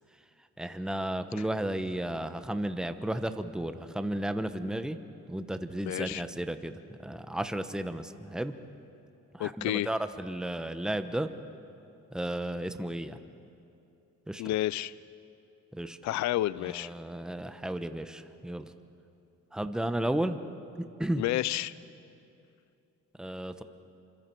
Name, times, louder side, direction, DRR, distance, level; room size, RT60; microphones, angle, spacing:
voice 1, 0.6-5.0 5.3-6.7 7.0-8.5 9.3-11.3 12.1-13.2 14.3-14.4 15.7-16.0 16.6-18.7 19.5-20.4 21.0-21.3 23.2-23.6, right 1 dB, ahead, 9 dB, 1.0 m, -33 dB
voice 2, 5.9-6.2 9.4-9.9 14.4-14.9 16.0-16.9 21.2-21.7, left 15 dB, 65° left, 18 dB, 0.5 m, -30 dB
27.5 x 25.5 x 4.6 m, 2.7 s
cardioid pair, 90°, 30 cm